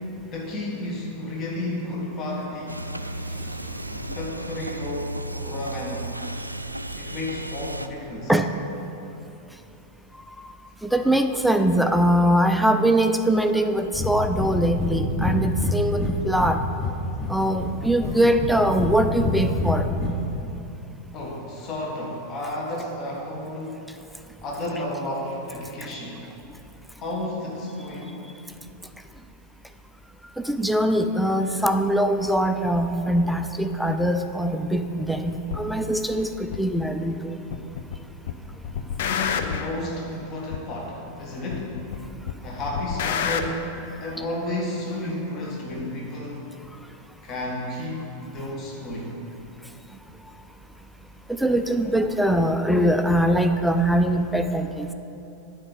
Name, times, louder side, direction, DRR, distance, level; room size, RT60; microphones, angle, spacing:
voice 1, 0.3-2.8 4.1-6.1 6.9-8.3 21.1-23.9 24.4-26.2 27.0-28.2 39.0-41.8 42.4-46.4 47.2-49.2, left 1 dB, 35° left, -2 dB, 1.6 m, -32 dB
sound 1, 2.7-7.9, right 1 dB, 85° right, 0.3 m, -34 dB
voice 2, 10.8-16.6 17.3-19.9 30.4-37.4 51.4-54.9, right 1 dB, ahead, 6 dB, 0.5 m, -22 dB
Breathing, 13.9-14.1 14.4-14.5 14.8-14.9 15.2-16.5 16.8-17.7 18.0-18.9 19.2-20.1, left 3 dB, 15° left, 1.4 m, -26 dB
sound 2, 35.5-35.6 36.5-36.6 37.5-38.0 38.3-39.7 40.5-40.6 41.5-42.0 42.3-43.5, left 7 dB, 55° left, 0.6 m, -28 dB
9.5 x 5.2 x 7.1 m, 2.9 s
figure-of-eight pair, 90°, 0 cm